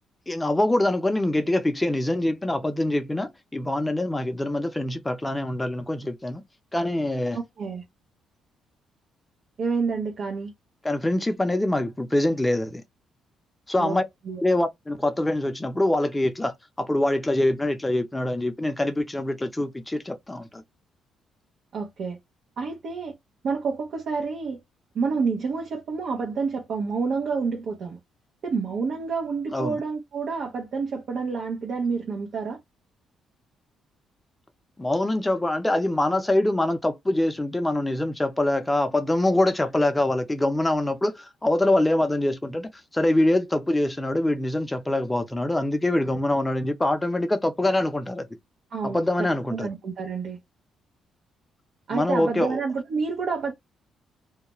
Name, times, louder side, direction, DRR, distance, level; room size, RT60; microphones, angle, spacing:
voice 1, 0.3-6.4 6.7-7.4 10.8-12.8 13.7-14.0 14.4-20.6 29.5-29.8 34.8-48.3 48.8-49.7 51.9-52.6, left 1 dB, 10° left, 0.5 m, -24 dB
voice 2, 7.3-7.8 9.6-10.5 13.8-14.0 14.3-14.4 21.7-22.2 22.6-23.1 23.4-24.6 24.9-28.0 28.4-32.6 48.7-50.4 51.9-53.5, right 5 dB, 65° right, 0.7 m, -29 dB
2.3 x 2.1 x 2.9 m
cardioid pair, 90°, 0 cm